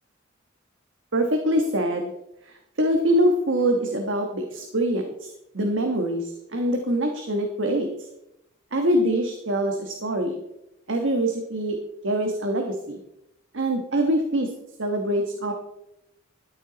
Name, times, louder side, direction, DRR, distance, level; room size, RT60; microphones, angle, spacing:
voice 1, 1.1-2.1 2.8-5.3 5.5-7.9 8.7-10.4 10.9-11.8 12.0-13.0 13.5-14.5 14.8-15.5, right 1 dB, 65° right, 4 dB, 1.4 m, -24 dB
13.5 x 10.5 x 4.1 m, 0.84 s
head